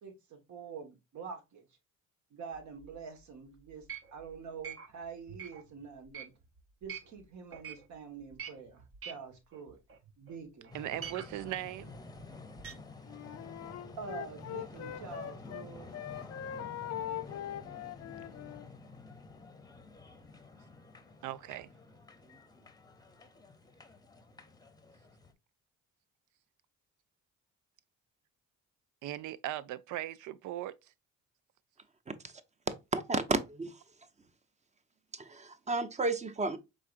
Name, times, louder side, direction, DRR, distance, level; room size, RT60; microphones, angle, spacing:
voice 1, 0.0-1.7 2.3-3.8 4.1-6.3 6.8-9.8 10.2-10.7 14.0-15.9, right 5 dB, 70° right, 1.5 m, -46 dB
sound 1, 2.5-3.2 3.7-7.2 7.5-7.9 8.2-10.4 10.6-12.7, right 8 dB, 50° right, 0.9 m, -46 dB
sound 2, 10.7-25.3, left 3 dB, 15° left, 0.7 m, -51 dB
voice 2, 10.7-11.9 21.2-21.7 29.0-30.8, right 13 dB, 85° right, 0.5 m, -38 dB
Wind instrument woodwind instrument, 13.1-15.7 15.9-18.7, left 11 dB, 55° left, 0.5 m, -41 dB
voice 3, 32.9-33.8 35.1-36.6, right 3 dB, 25° right, 0.6 m, -32 dB
4.8 x 3.7 x 2.5 m
cardioid pair, 90°, 30 cm